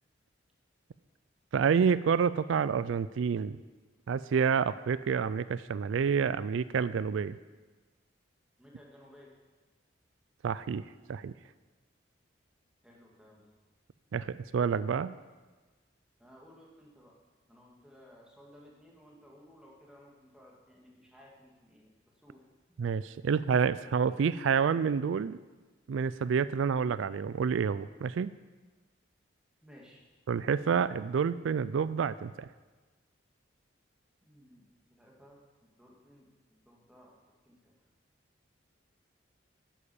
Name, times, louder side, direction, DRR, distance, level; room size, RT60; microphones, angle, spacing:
voice 1, 1.5-3.6 4.1-7.4 10.4-10.8 11.1-11.3 14.1-15.1 22.8-25.4 25.9-28.3 30.3-32.5, right 6 dB, 85° right, 16 dB, 0.4 m, -28 dB
voice 2, 8.6-9.3 12.8-13.4 16.2-17.1 17.5-22.5 29.6-30.0 34.2-37.1 37.4-37.7, equal, 5° right, -3 dB, 2.1 m, -57 dB
10.0 x 8.7 x 7.0 m, 1.3 s
head